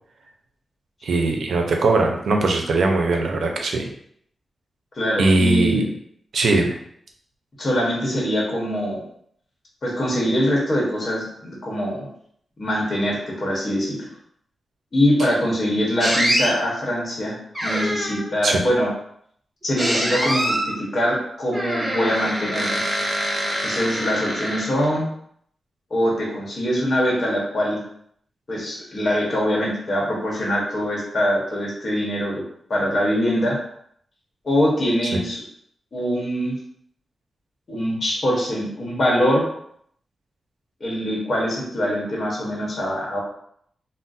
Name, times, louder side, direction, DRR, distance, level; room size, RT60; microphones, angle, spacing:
voice 1, 1.0-3.9 5.2-5.9 6.3-6.8 18.4-18.6, right 2 dB, 75° right, 2 dB, 0.5 m, -20 dB
voice 2, 4.9-5.9 7.6-9.0 9.8-12.1 12.6-14.1 14.9-17.4 17.6-18.9 19.6-22.8 23.6-25.1 25.9-27.8 28.5-32.4 32.7-33.6 34.4-35.4 35.9-36.6 37.7-39.4 40.8-43.2, equal, 45° left, -4 dB, 0.9 m, -23 dB
sound 1, 16.0-16.5 17.5-18.3 19.8-20.7 21.5-25.0, equal, 15° right, 0.8 m, -24 dB
2.5 x 2.0 x 3.9 m, 0.67 s
wide cardioid pair, 110°, 0 cm